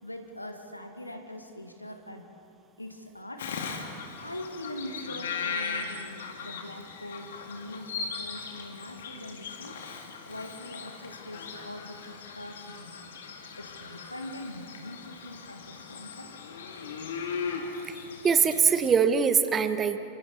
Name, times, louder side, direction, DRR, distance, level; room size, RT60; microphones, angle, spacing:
voice 1, 0.0-2.3 2.8-3.7 4.2-9.8 10.3-13.0 13.6-16.3, left 1 dB, 85° left, 4 dB, 2.2 m, -42 dB
Bird vocalization bird call bird song, 3.4-18.9, left 5 dB, 60° left, 2.5 m, -38 dB
voice 2, 17.9-20.0, right 6 dB, 20° right, 10 dB, 1.3 m, -23 dB
29.5 x 27.0 x 4.2 m, 2.5 s
figure-of-eight pair, 90°, 0 cm